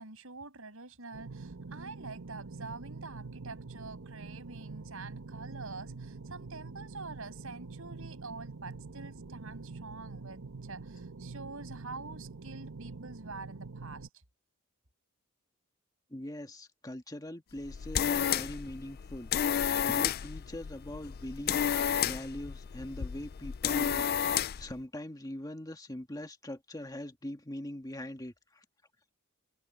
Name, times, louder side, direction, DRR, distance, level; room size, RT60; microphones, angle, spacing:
voice 1, 0.0-14.1, right 3 dB, 70° right, 6.8 m, -46 dB
sound 1, 1.1-14.1, right 3 dB, 90° right, 1.2 m, -45 dB
voice 2, 16.1-24.1 24.3-28.6, left 1 dB, 15° left, 1.7 m, -42 dB
sound 2, 17.6-24.7, left 9 dB, 45° left, 0.4 m, -31 dB
head